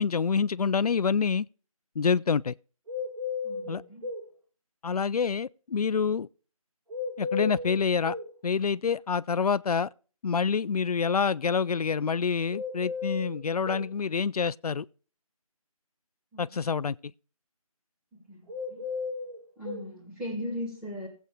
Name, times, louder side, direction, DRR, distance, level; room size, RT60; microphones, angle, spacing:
voice 1, 0.0-1.5 2.0-2.5 3.7-3.8 4.8-6.3 7.2-8.2 8.4-9.9 10.2-14.9 16.4-17.0, left 6 dB, 85° left, 0.4 m, -27 dB
sound 1, 2.9-4.3 6.9-8.3 12.5-13.9 18.5-19.9, left 4 dB, 75° right, 2.5 m, -34 dB
voice 2, 3.4-4.1 16.3-16.6 18.1-18.8 19.6-21.1, left 1 dB, 5° right, 2.3 m, -38 dB
18.5 x 8.0 x 2.2 m
figure-of-eight pair, 170°, 19 cm